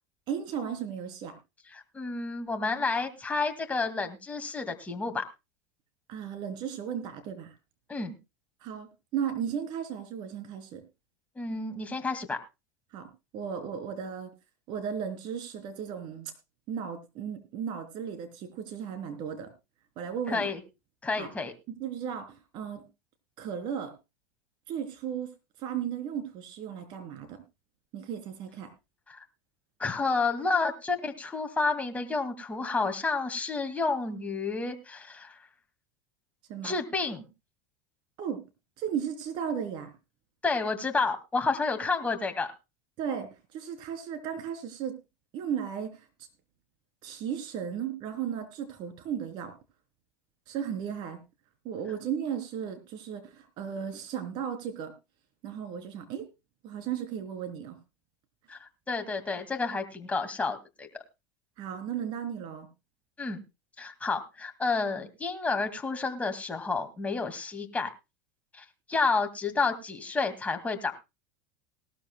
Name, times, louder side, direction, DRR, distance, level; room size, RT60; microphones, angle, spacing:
voice 1, 0.3-1.4 6.1-7.5 8.6-10.8 12.9-14.3 14.7-16.3 16.7-19.5 20.0-20.5 21.2-21.3 21.8-22.8 23.4-23.9 24.7-25.3 25.6-27.4 27.9-28.7 36.5-36.8 38.2-38.4 38.8-39.9 43.0-44.9 45.3-46.1 47.0-49.5 50.5-51.2 51.6-54.9 55.4-56.3 56.6-57.8 61.6-62.7, right 8 dB, 55° right, 8 dB, 3.6 m, -35 dB
voice 2, 1.7-5.2 7.9-8.1 11.4-12.4 20.3-20.6 21.0-21.5 29.1-29.2 29.8-35.4 36.6-37.3 40.4-42.5 58.5-60.9 63.2-63.4 63.8-67.9 68.5-71.0, left 4 dB, 15° left, 5 dB, 2.2 m, -30 dB
19.0 x 13.0 x 2.3 m, 0.25 s
hypercardioid pair, 105°, 10 cm